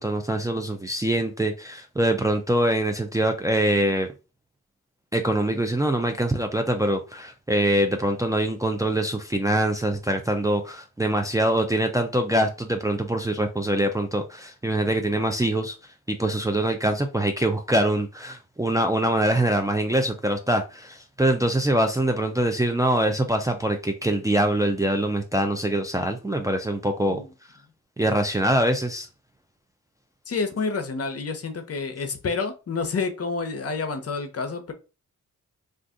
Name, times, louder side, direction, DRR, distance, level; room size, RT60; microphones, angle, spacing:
voice 1, 0.0-4.1 5.1-15.7 16.1-27.2 28.0-29.1, right 1 dB, 10° right, 0.5 m, -24 dB
voice 2, 30.3-34.7, left 4 dB, 45° left, 0.8 m, -29 dB
2.5 x 2.5 x 3.6 m
cardioid pair, 60°, 32 cm